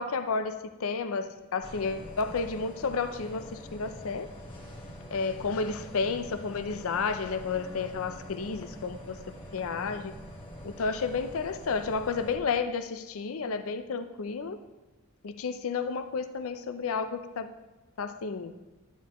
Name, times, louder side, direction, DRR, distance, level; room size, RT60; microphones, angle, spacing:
voice 1, 0.0-4.3 5.1-9.2 9.5-10.1 10.6-14.6 15.2-17.5 18.0-18.5, left 5 dB, 70° left, 10 dB, 0.5 m, -31 dB
sound 1, 1.6-12.4, equal, 25° left, 1.4 m, -45 dB
11.0 x 10.0 x 3.0 m, 1.1 s
head